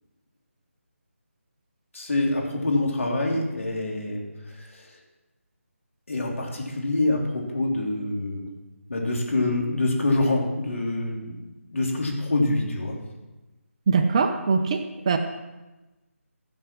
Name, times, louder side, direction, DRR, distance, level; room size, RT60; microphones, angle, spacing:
voice 1, 1.9-4.2 4.6-4.9 6.1-8.5 8.9-11.3 11.7-13.0, left 2 dB, 65° left, -1 dB, 3.4 m, -25 dB
voice 2, 13.9-15.2, right 5 dB, 25° right, 7 dB, 0.6 m, -22 dB
15.5 x 6.1 x 6.1 m, 1.1 s
figure-of-eight pair, 155°, 8 cm